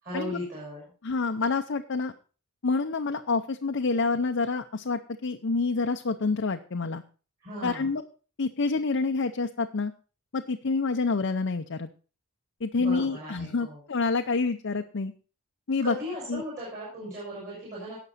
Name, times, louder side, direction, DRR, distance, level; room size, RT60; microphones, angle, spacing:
voice 1, 0.0-0.9 7.4-7.9 12.8-13.8 15.8-18.0, left 1 dB, 35° right, -5 dB, 5.9 m, -37 dB
voice 2, 1.0-2.1 2.6-7.0 7.6-8.0 8.4-9.9 10.3-11.9 12.6-15.1 15.7-16.0 16.3-16.4, left 4 dB, 55° left, 5 dB, 0.6 m, -27 dB
17.5 x 6.1 x 4.1 m, 0.36 s
head